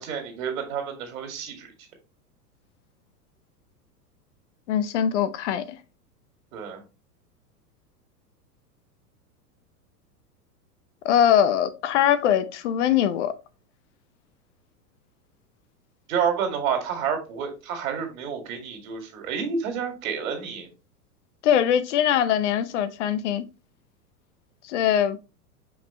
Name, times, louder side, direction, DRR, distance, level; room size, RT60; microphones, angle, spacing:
voice 1, 0.0-1.7 6.5-6.8 16.1-20.7, right 7 dB, 55° right, 2.5 m, -29 dB
voice 2, 4.7-5.6 11.0-13.3 21.4-23.4 24.6-25.2, left 9 dB, 45° left, 0.7 m, -22 dB
6.0 x 5.2 x 3.1 m
figure-of-eight pair, 95°, 49 cm